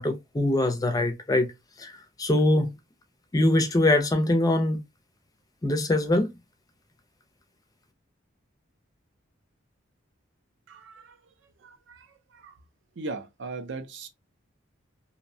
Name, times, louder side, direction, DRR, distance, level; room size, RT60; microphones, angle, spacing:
voice 1, 0.0-1.5 1.8-1.9 2.2-2.7 3.3-4.8 5.6-6.3, left 1 dB, 20° left, 0.4 m, -23 dB
voice 2, 13.0-14.1, right 3 dB, 60° right, 0.4 m, -35 dB
2.6 x 2.1 x 2.6 m
head